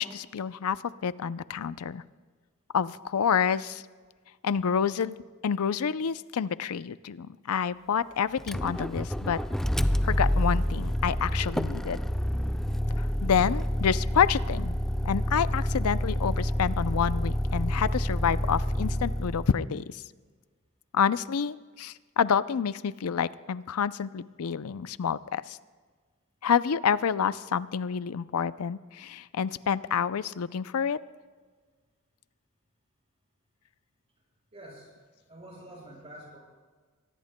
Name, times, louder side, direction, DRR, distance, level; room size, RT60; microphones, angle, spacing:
voice 1, 0.0-2.0 2.7-3.8 4.4-5.2 5.4-9.4 10.0-12.0 13.0-14.8 15.0-20.0 20.9-25.6 26.4-31.0, left 7 dB, 70° left, 15 dB, 0.5 m, -28 dB
Motor vehicle (road), 8.4-19.6, equal, ahead, 0.3 m, -28 dB
voice 2, 34.5-36.4, right 1 dB, 30° right, -2 dB, 5.7 m, -47 dB
23.5 x 19.0 x 2.2 m, 1.5 s
head